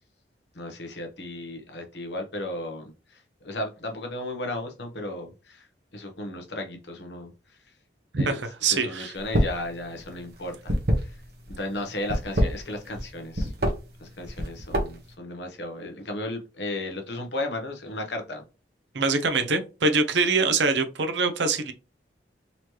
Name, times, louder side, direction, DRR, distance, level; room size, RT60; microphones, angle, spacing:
voice 1, 0.5-5.7 5.9-7.3 8.2-11.2 11.5-13.5 14.0-18.4, left 1 dB, 75° left, 1.1 m, -35 dB
voice 2, 8.1-9.1 18.9-21.7, right 4 dB, 85° right, 0.7 m, -24 dB
sound 1, 9.2-9.6 9.9-11.5 12.0-13.1 13.3-13.7 14.2-15.1, equal, 60° right, 1.1 m, -24 dB
4.0 x 3.0 x 3.2 m
head